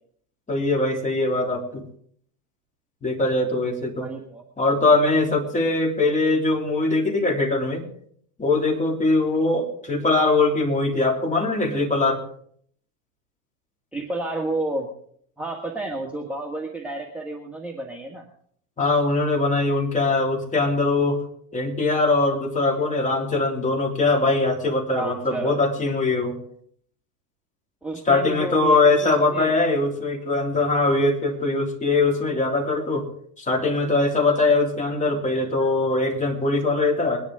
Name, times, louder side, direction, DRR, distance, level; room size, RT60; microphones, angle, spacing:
voice 1, 0.5-1.8 3.0-4.1 4.6-7.9 8.4-12.2 18.8-21.2 21.5-26.3 28.1-33.1 33.4-37.2, left 3 dB, 15° left, 1 dB, 3.1 m, -21 dB
voice 2, 4.0-4.4 13.9-14.9 15.4-18.3 24.9-25.6 27.8-29.5, right 2 dB, 5° right, -1 dB, 1.6 m, -31 dB
22.0 x 10.5 x 3.7 m, 0.63 s
supercardioid pair, 120°, 42 cm